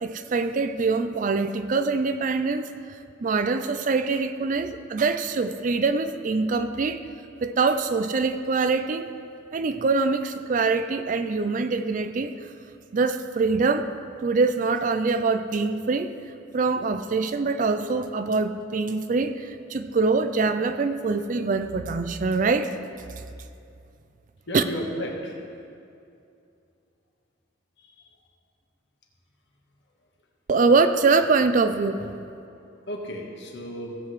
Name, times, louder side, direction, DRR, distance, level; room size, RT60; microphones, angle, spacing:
voice 1, 0.0-2.7 3.2-7.0 7.4-9.1 9.5-12.5 12.9-13.9 14.2-16.1 16.5-22.8 24.5-24.6 30.5-32.2, right 4 dB, 40° right, 10 dB, 0.4 m, -24 dB
voice 2, 24.5-25.4 27.8-28.1 32.9-34.0, equal, 55° left, -1 dB, 1.5 m, -34 dB
16.5 x 7.8 x 3.2 m, 2.5 s
head